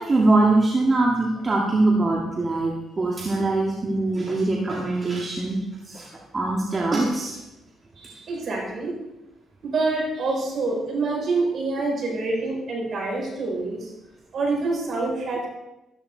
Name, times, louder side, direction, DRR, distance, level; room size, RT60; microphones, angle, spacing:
voice 1, 0.0-5.6 5.9-6.0 6.3-7.3, right 2 dB, 30° right, -2 dB, 2.1 m, -22 dB
voice 2, 8.0-8.9 9.6-13.9 14.3-15.5, right 3 dB, 55° right, -1 dB, 6.1 m, -26 dB
13.5 x 13.5 x 4.0 m, 0.95 s
cardioid pair, 90°, 0 cm